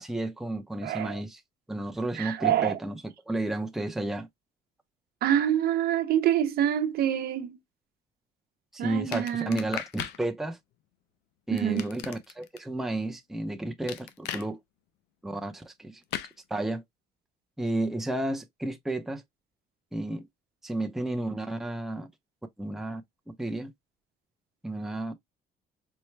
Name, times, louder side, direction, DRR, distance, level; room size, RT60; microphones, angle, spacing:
voice 1, 0.0-1.4 1.7-3.0 3.3-4.3 8.7-10.6 11.5-14.6 15.2-16.0 16.5-16.8 17.6-19.2 19.9-20.3 20.6-22.1 22.6-23.0 23.3-23.7 24.6-25.1, right 1 dB, ahead, 0.6 m, -32 dB
voice 2, 0.8-1.2 2.1-2.8 5.2-7.6 8.8-9.6 11.5-11.9, right 11 dB, 65° right, 0.8 m, -26 dB
sound 1, 9.1-10.2 11.6-12.6 13.9-14.5 16.1-16.3, left 11 dB, 85° left, 0.6 m, -36 dB
4.4 x 2.1 x 3.2 m
cardioid pair, 110°, 17 cm